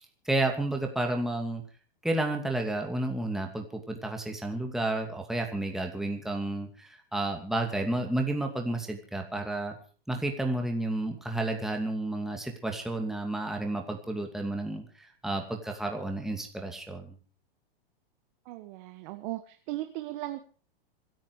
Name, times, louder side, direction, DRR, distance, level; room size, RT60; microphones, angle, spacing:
voice 1, 0.0-1.6 2.0-9.7 10.1-17.2, right 2 dB, ahead, 3 dB, 2.5 m, -31 dB
voice 2, 18.4-20.4, right 16 dB, 50° right, 8 dB, 1.6 m, -37 dB
26.0 x 9.1 x 4.9 m, 0.41 s
hypercardioid pair, 120°, 30 cm